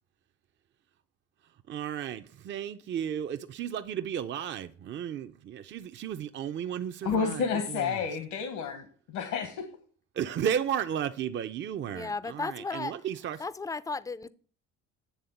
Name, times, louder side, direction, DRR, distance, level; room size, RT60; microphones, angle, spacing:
voice 1, 1.7-8.0 10.2-13.4, right 9 dB, 40° right, 0.5 m, -34 dB
voice 2, 7.0-9.6, left 6 dB, 75° left, 1.2 m, -30 dB
voice 3, 11.9-12.9 13.4-14.3, left 4 dB, 10° left, 0.4 m, -34 dB
9.4 x 3.5 x 6.9 m
cardioid pair, 95°, 29 cm